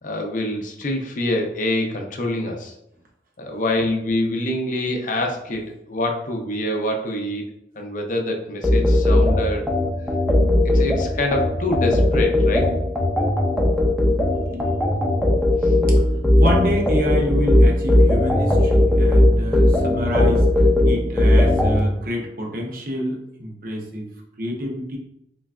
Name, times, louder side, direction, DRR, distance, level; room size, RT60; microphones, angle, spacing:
voice 1, 0.0-2.7 3.4-7.4 7.8-9.7 10.7-12.7 15.6-15.7, left 1 dB, 45° left, 2 dB, 0.6 m, -25 dB
sound 1, 8.6-21.8, left 1 dB, ahead, 0.5 m, -17 dB
voice 2, 10.3-10.7 12.6-12.9 14.1-14.7 16.3-20.5 20.8-24.1 24.4-25.0, equal, 50° right, 0 dB, 0.8 m, -28 dB
3.9 x 3.2 x 2.3 m, 0.82 s
head